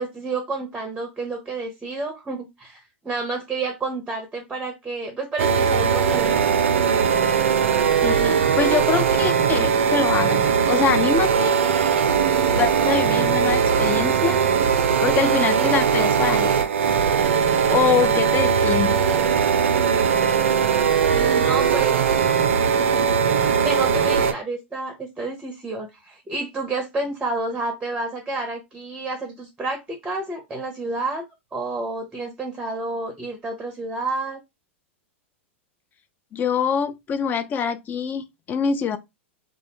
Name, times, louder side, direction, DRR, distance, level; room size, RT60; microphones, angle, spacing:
voice 1, 0.0-6.5 21.1-22.0 22.8-31.2 31.5-34.4, right 3 dB, 15° right, 0.6 m, -30 dB
sound 1, 5.4-24.3, right 7 dB, 75° right, 0.4 m, -20 dB
voice 2, 8.0-11.6 12.5-14.4 15.0-16.6 17.7-19.0 36.3-39.0, left 7 dB, 25° left, 0.4 m, -24 dB
2.4 x 2.1 x 2.8 m
hypercardioid pair, 105°, 7 cm